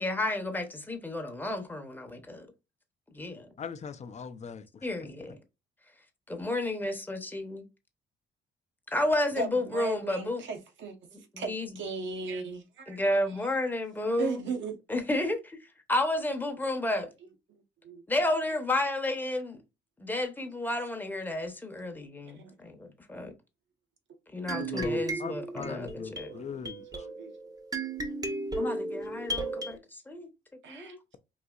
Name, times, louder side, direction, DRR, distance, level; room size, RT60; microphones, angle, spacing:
voice 1, 0.0-2.5 3.1-3.5 4.8-5.3 6.3-7.6 8.9-10.4 11.5-11.7 12.9-14.4 14.9-15.6 15.9-17.1 18.1-19.6 20.0-23.3 24.3-26.3 28.6-30.3 30.7-31.0, left 1 dB, 10° left, 0.8 m, -31 dB
voice 2, 3.6-5.4 24.5-27.1, left 6 dB, 35° left, 0.5 m, -41 dB
voice 3, 9.3-13.6 14.2-14.8 16.6-16.9 17.2-18.0 21.4-21.6 22.3-22.6 26.3-26.4 26.9-27.4 28.5-29.8 30.6-31.0, right 4 dB, 70° right, 1.0 m, -39 dB
sound 1, 24.5-29.7, right 2 dB, 20° right, 0.7 m, -35 dB
4.0 x 2.7 x 2.3 m
cardioid pair, 90°, 20 cm